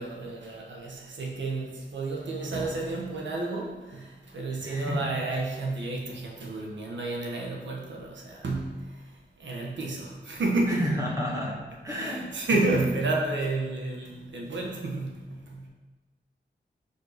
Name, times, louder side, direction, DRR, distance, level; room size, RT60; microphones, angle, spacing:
voice 1, 0.0-10.9 11.9-15.7, right 2 dB, 90° right, -1 dB, 1.1 m, -31 dB
voice 2, 4.6-5.1 10.7-11.6 11.8-12.2, equal, 15° right, -4 dB, 1.9 m, -30 dB
6.5 x 5.4 x 4.0 m, 1.2 s
wide cardioid pair, 75°, 18 cm